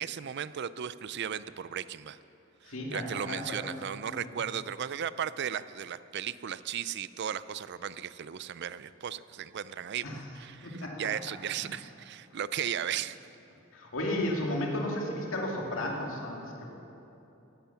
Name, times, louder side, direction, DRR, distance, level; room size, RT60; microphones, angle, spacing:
voice 1, 0.0-2.2 2.9-13.2, right 9 dB, 55° right, 16 dB, 0.4 m, -36 dB
voice 2, 2.6-3.8 4.2-4.3 10.0-10.2 10.6-11.1 13.7-16.7, left 1 dB, 70° left, -1 dB, 2.4 m, -34 dB
17.5 x 11.5 x 7.0 m, 2.9 s
head